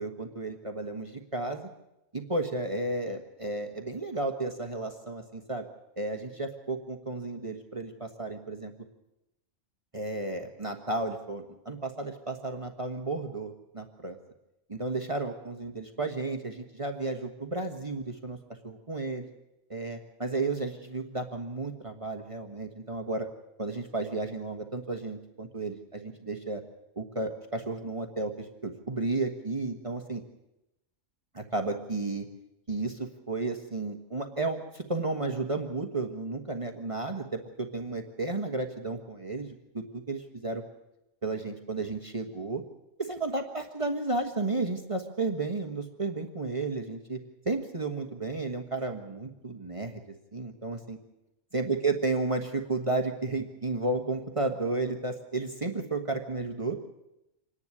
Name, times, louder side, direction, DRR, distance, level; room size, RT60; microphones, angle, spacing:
voice 1, 0.0-1.7 2.1-5.7 6.0-8.7 9.9-14.2 14.7-18.4 18.6-19.3 19.7-23.3 23.6-26.6 27.0-30.2 31.3-32.2 32.7-40.6 41.2-42.6 43.0-47.2 47.4-50.0 50.3-51.0 51.5-56.8, right 3 dB, 30° right, 4 dB, 1.4 m, -33 dB
26.0 x 10.5 x 9.8 m, 0.91 s
omnidirectional pair, 1.2 m